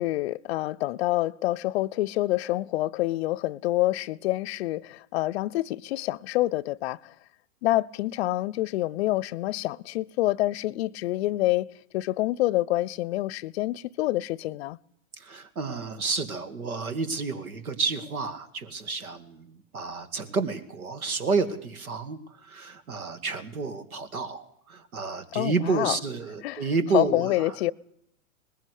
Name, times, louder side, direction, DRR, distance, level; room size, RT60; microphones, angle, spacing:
voice 1, 0.0-7.1 7.6-11.7 11.9-14.8 25.3-26.0 26.4-26.6 26.9-27.7, left 17 dB, 50° left, 0.7 m, -27 dB
voice 2, 15.1-27.6, right 4 dB, 85° right, 2.4 m, -30 dB
20.5 x 15.0 x 8.3 m
hypercardioid pair, 120°, 42 cm